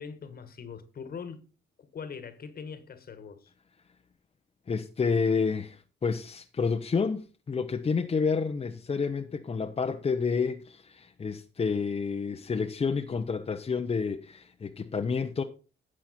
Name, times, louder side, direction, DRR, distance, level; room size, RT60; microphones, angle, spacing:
voice 1, 0.0-1.4 1.8-3.5, left 6 dB, 50° left, 1.6 m, -42 dB
voice 2, 4.7-15.4, left 5 dB, 30° left, 0.8 m, -29 dB
11.5 x 7.3 x 4.2 m
cardioid pair, 90°, 20 cm